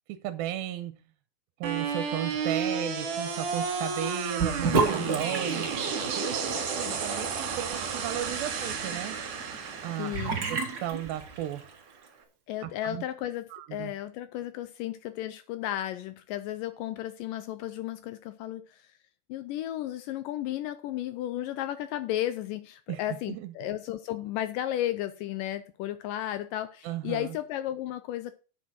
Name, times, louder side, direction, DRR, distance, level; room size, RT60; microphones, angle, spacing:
voice 1, 0.1-1.0 1.6-5.7 6.2-9.2 9.8-11.7 12.6-13.0 13.5-13.9 22.9-23.0 23.3-23.5 26.8-27.4, right 12 dB, 90° right, 2.5 m, -35 dB
sound 1, 1.6-11.7, right 5 dB, 60° right, 3.4 m, -32 dB
Sink (filling or washing) / Bathtub (filling or washing), 4.4-11.7, right 4 dB, 40° right, 1.4 m, -33 dB
voice 2, 10.0-10.3 12.5-18.9 19.3-28.3, left 13 dB, 80° left, 2.0 m, -34 dB
8.7 x 6.4 x 6.1 m
omnidirectional pair, 4.2 m